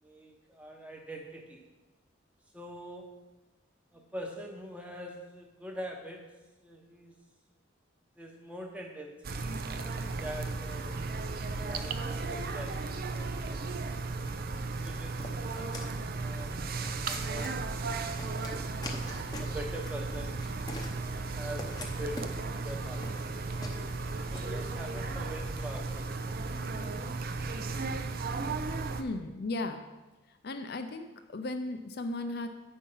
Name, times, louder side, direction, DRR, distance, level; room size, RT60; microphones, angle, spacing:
voice 1, 0.0-1.6 2.5-3.1 3.9-6.2 6.6-7.1 8.2-9.5 10.2-11.2 11.5-13.6 14.7-15.8 16.2-16.5 17.0-18.6 19.4-20.4 21.2-23.3 24.3-26.1, equal, 5° right, 1 dB, 1.0 m, -44 dB
sound 1, 9.2-29.0, right 3 dB, 45° right, 0.5 m, -35 dB
sound 2, 15.2-24.4, left 1 dB, 20° left, 0.8 m, -44 dB
voice 2, 29.0-29.8 30.4-32.5, left 2 dB, 50° left, 7 dB, 0.5 m, -35 dB
8.7 x 5.4 x 5.5 m, 1.1 s
head